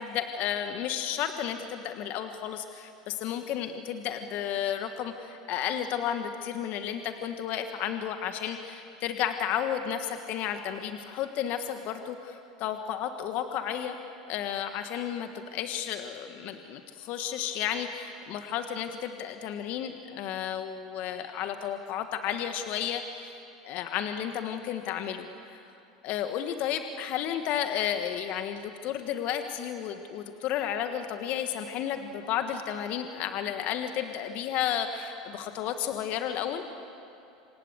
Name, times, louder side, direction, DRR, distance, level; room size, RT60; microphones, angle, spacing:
voice 1, 0.0-13.9 14.3-23.4 23.6-25.7 26.0-36.6, left 9 dB, 55° left, 7 dB, 1.6 m, -32 dB
27.5 x 26.5 x 8.1 m, 2.7 s
hypercardioid pair, 90°, 4 cm